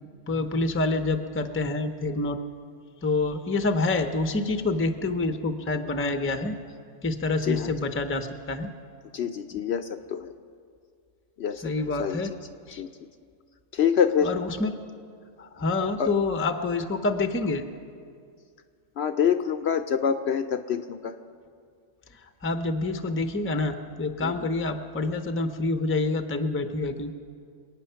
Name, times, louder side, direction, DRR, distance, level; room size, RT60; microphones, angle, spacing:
voice 1, 0.3-2.4 3.0-6.6 7.0-8.7 11.6-12.3 12.7-12.8 14.2-14.7 15.4-17.6 22.4-27.1, left 3 dB, 15° left, 8 dB, 0.5 m, -27 dB
voice 2, 7.4-7.9 9.1-10.3 11.4-11.6 12.0-12.2 12.8-12.9 13.7-14.3 16.0-16.1 19.0-21.1 24.2-24.3, left 7 dB, 65° left, 8 dB, 0.7 m, -26 dB
27.0 x 9.2 x 5.7 m, 2.2 s
omnidirectional pair, 1.4 m